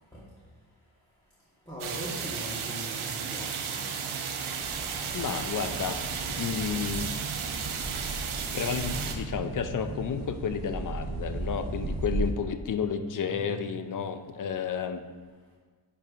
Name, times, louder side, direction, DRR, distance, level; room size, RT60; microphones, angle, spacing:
voice 1, 1.7-4.0 13.2-13.7, equal, 10° left, -9 dB, 1.2 m, -41 dB
sound 1, 1.8-9.1, right 6 dB, 85° right, 0.7 m, -34 dB
sound 2, 4.6-12.3, right 2 dB, 45° right, 0.8 m, -36 dB
voice 2, 5.1-6.0 6.3-7.1 8.5-15.0, left 7 dB, 45° left, 9 dB, 0.5 m, -31 dB
10.0 x 4.6 x 2.5 m, 1.5 s
wide cardioid pair, 95°, 48 cm